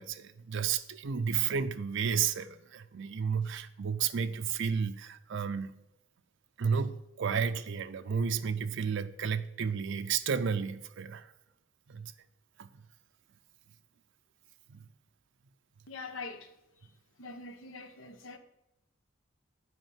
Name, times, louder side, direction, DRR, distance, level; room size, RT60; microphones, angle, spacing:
voice 1, 0.0-5.7 6.6-11.3 11.9-12.1 12.6-12.7 14.7-14.8, right 6 dB, 65° right, 0.5 m, -32 dB
voice 2, 15.9-16.5 16.8-16.9 17.2-18.4, left 3 dB, 85° left, 1.0 m, -44 dB
8.0 x 5.1 x 7.2 m
head